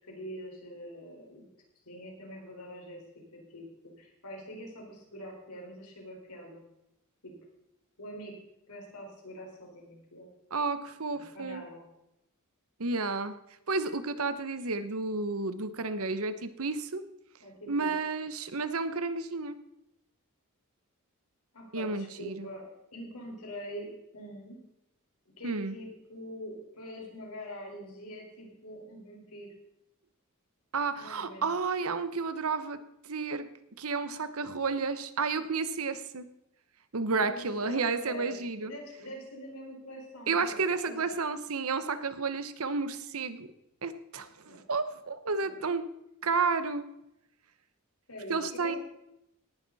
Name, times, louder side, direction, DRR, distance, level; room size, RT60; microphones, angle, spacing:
voice 1, 0.0-1.5 1.8-3.0 3.3-3.6 4.0-6.6 7.2-7.3 8.0-8.3 8.7-10.3 11.1-11.9 17.4-17.9 21.5-24.6 25.4-29.5 31.0-31.5 37.2-41.0 44.4-44.7 45.4-45.5 48.1-48.8, equal, 85° left, -1 dB, 4.7 m, -44 dB
voice 2, 10.5-11.6 12.8-13.4 13.7-17.0 17.7-19.6 21.7-22.5 25.4-25.8 30.7-33.5 33.8-36.3 36.9-38.7 40.3-43.5 43.8-45.9 46.2-46.9 48.3-48.8, right 4 dB, 70° right, 12 dB, 1.0 m, -31 dB
18.0 x 11.0 x 4.1 m, 0.85 s
head